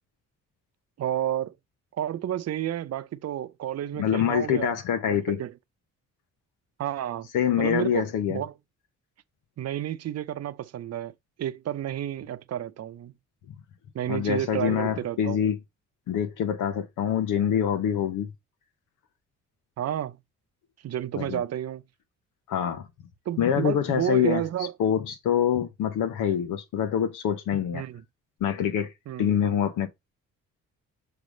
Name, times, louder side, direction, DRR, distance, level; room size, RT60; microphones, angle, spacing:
voice 1, 1.0-1.5 1.9-4.7 5.1-5.5 6.8-7.3 7.6-8.5 9.6-11.1 11.4-13.1 13.9-15.4 19.8-20.2 20.8-21.8 23.3-24.7 27.7-28.0 29.1-29.3, right 11 dB, 55° right, 0.7 m, -31 dB
voice 2, 3.9-5.4 7.3-8.4 14.1-15.6 16.1-18.3 21.1-21.4 22.5-22.9 23.4-24.4 24.8-27.8 28.4-28.9 29.2-29.9, left 9 dB, 85° left, 1.1 m, -25 dB
6.8 x 3.3 x 5.2 m
cardioid pair, 90°, 30 cm